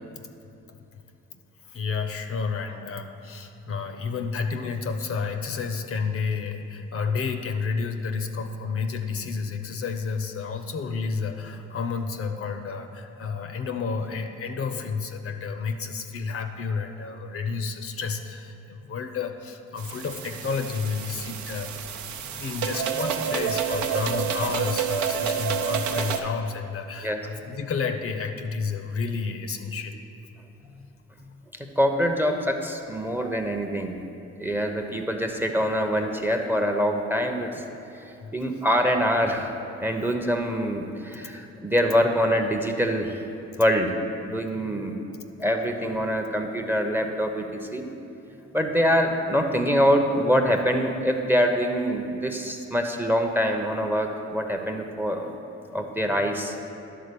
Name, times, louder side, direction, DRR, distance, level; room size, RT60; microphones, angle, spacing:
voice 1, 1.6-21.8 22.4-30.0 38.2-38.3 41.2-41.3, left 5 dB, 50° left, 6 dB, 0.7 m, -31 dB
sound 1, 19.8-26.2, right 7 dB, 70° right, 0.7 m, -29 dB
voice 2, 31.8-34.0 34.4-37.6 38.1-39.5 39.8-43.2 43.6-44.0 44.2-45.0 45.4-47.8 48.5-55.3 55.7-56.6, equal, 5° right, 4 dB, 0.7 m, -24 dB
11.0 x 3.8 x 6.8 m, 2.8 s
cardioid pair, 90°, 30 cm